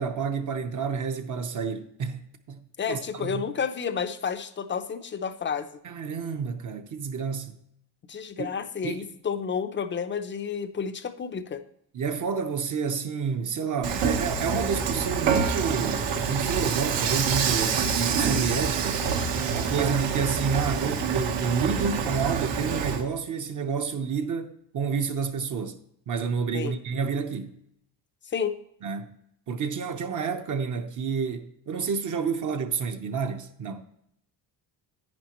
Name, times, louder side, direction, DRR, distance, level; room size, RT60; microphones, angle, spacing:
voice 1, 0.0-3.5 5.8-7.6 8.4-8.5 8.8-9.1 11.9-19.0 19.5-25.8 26.1-27.5 28.8-29.2 29.5-33.8, right 6 dB, 45° right, 0.9 m, -29 dB
voice 2, 2.8-5.7 8.1-11.6 26.5-26.7 28.3-28.6, left 6 dB, 25° left, 0.6 m, -30 dB
Dishes pots and pans / Frying (food), 13.8-23.0, right 6 dB, 70° right, 1.2 m, -26 dB
10.5 x 9.4 x 3.0 m
cardioid pair, 145°, 44 cm